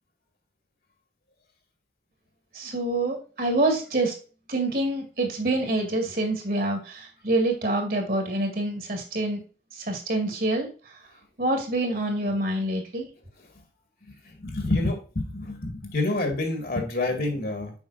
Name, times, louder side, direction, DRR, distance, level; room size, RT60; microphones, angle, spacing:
voice 1, 2.5-4.1 4.5-9.4 9.9-10.7 11.4-13.1, right 2 dB, 55° right, 3 dB, 2.0 m, -26 dB
voice 2, 14.1-17.7, left 2 dB, 55° left, 3 dB, 2.0 m, -28 dB
7.1 x 5.4 x 2.6 m, 0.36 s
head